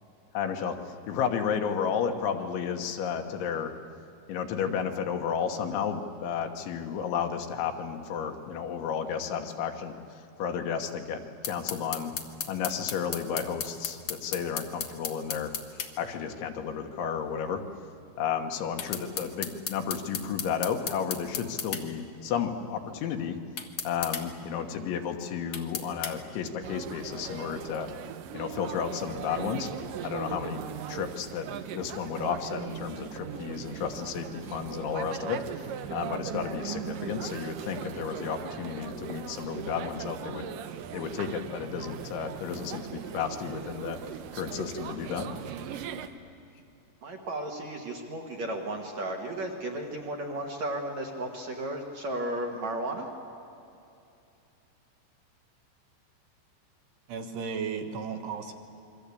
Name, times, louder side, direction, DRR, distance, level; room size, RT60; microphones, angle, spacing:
voice 1, 0.4-0.8 1.1-3.7 4.3-12.1 12.5-15.5 16.0-17.6 18.2-23.4 23.9-27.9 28.3-29.7 30.0-30.6 30.9-40.5 40.9-44.0 44.3-45.3, left 7 dB, 85° left, 5 dB, 3.8 m, -32 dB
sound 1, 11.4-15.9 18.8-21.8 23.6-24.2 25.5-26.1, left 8 dB, 60° left, 1.9 m, -34 dB
sound 2, 26.6-46.1, right 9 dB, 90° right, 1.9 m, -39 dB
voice 2, 47.0-53.1, right 1 dB, 55° right, 1 dB, 2.2 m, -34 dB
voice 3, 57.1-58.5, right 6 dB, 70° right, 5 dB, 3.4 m, -34 dB
28.0 x 23.0 x 8.5 m, 2.7 s
omnidirectional pair, 5.3 m